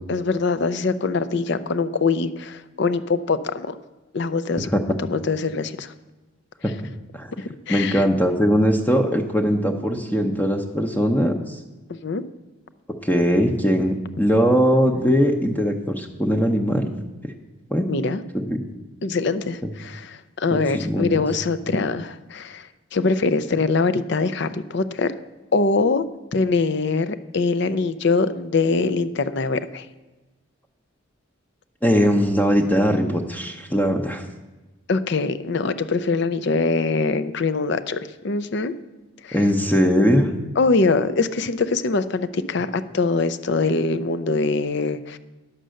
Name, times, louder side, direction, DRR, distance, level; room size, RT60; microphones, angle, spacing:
voice 1, 0.1-3.8 4.1-4.7 5.1-5.9 7.4-8.0 12.0-12.2 17.9-18.2 19.0-25.1 25.5-26.0 26.3-29.9 34.9-38.7 39.2-39.4 40.6-45.2, left 3 dB, 55° left, 11 dB, 0.5 m, -23 dB
voice 2, 7.7-11.6 13.0-16.9 17.7-17.9 18.3-18.6 20.5-21.2 31.8-34.2 39.3-40.3, equal, 10° left, 3 dB, 0.7 m, -20 dB
10.0 x 6.7 x 6.4 m, 1.2 s
head